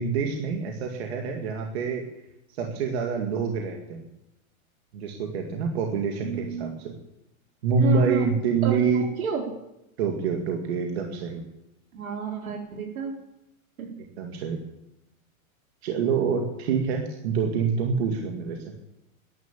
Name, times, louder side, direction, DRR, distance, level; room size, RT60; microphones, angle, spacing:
voice 1, 0.0-2.0 2.5-4.0 4.9-6.9 7.6-9.0 10.0-11.4 14.2-14.6 15.8-18.6, right 5 dB, 50° right, 2 dB, 2.1 m, -26 dB
voice 2, 6.2-6.8 7.7-8.3 8.6-9.5 11.9-13.1 13.8-13.9, right 6 dB, 80° right, 2 dB, 4.1 m, -31 dB
14.0 x 11.0 x 7.4 m, 0.89 s
supercardioid pair, 170°, 42 cm